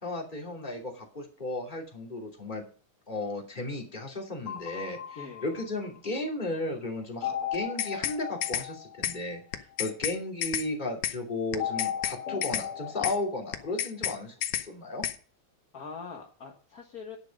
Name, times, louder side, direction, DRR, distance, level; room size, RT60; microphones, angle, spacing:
voice 1, 0.0-2.6 3.1-15.1, left 2 dB, 15° left, 0 dB, 2.6 m, -35 dB
sound 1, 4.5-6.2 7.2-9.7 11.6-13.7, left 9 dB, 65° left, 2.2 m, -37 dB
voice 2, 5.2-5.6 9.8-10.0 15.7-17.2, left 5 dB, 45° left, 2 dB, 1.3 m, -43 dB
sound 2, 7.5-8.2 8.4-8.7 9.0-9.2 9.5-10.2 10.4-10.7 11.0-11.2 11.5-12.2 12.4-12.7 13.0-13.2 13.5-14.2 14.4-14.7 15.0-15.2, left 12 dB, 85° left, 2.3 m, -30 dB
10.5 x 9.9 x 5.2 m, 0.40 s
omnidirectional pair, 3.3 m